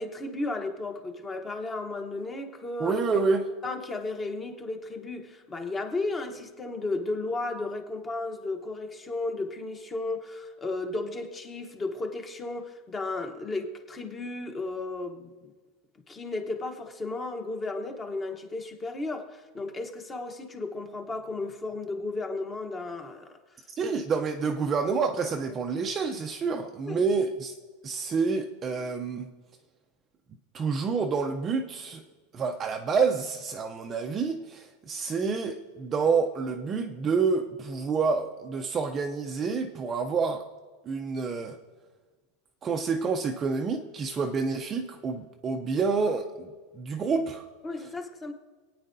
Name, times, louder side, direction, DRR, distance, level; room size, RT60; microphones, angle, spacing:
voice 1, 0.0-3.0 3.6-15.3 16.1-23.4 26.8-27.0 47.6-48.3, left 2 dB, 15° left, 0.9 m, -34 dB
voice 2, 2.8-3.4 23.8-27.5 27.8-29.3 30.5-32.0 32.3-40.4 40.9-41.6 42.6-46.5 46.7-47.5, right 5 dB, 20° right, 0.6 m, -28 dB
27.5 x 9.3 x 2.6 m
supercardioid pair, 170°, 0 cm